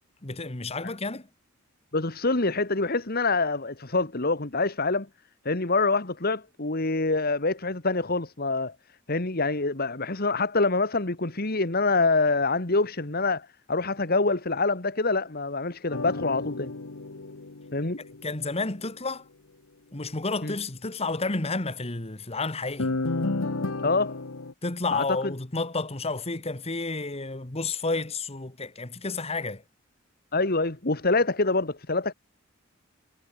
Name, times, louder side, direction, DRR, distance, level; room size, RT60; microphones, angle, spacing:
voice 1, 0.2-1.3 18.2-19.3 19.9-22.9 24.6-29.6, left 3 dB, 30° left, 1.7 m, -31 dB
voice 2, 1.9-5.1 5.5-8.8 9.1-16.7 17.7-18.0 20.4-20.5 23.8-24.2 24.9-25.3 30.3-32.1, left 3 dB, 50° left, 2.0 m, -26 dB
sound 1, 15.9-18.5 22.8-24.5, left 2 dB, 85° left, 1.3 m, -32 dB
head